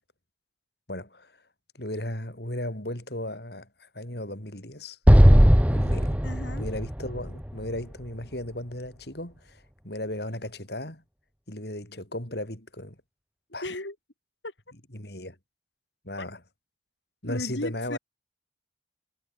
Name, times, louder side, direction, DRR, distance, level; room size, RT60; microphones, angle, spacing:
voice 1, 0.9-1.3 1.7-5.0 5.7-6.2 6.6-11.0 11.5-13.0 13.5-13.7 14.9-15.4 16.0-16.4 17.2-18.0, left 1 dB, 60° left, 6.2 m, -36 dB
Explosion, 5.1-8.3, equal, 5° right, 1.5 m, -18 dB
voice 2, 6.2-6.7 13.6-13.9 14.4-14.5 16.2-16.3 17.2-18.0, left 1 dB, 80° left, 4.7 m, -35 dB
head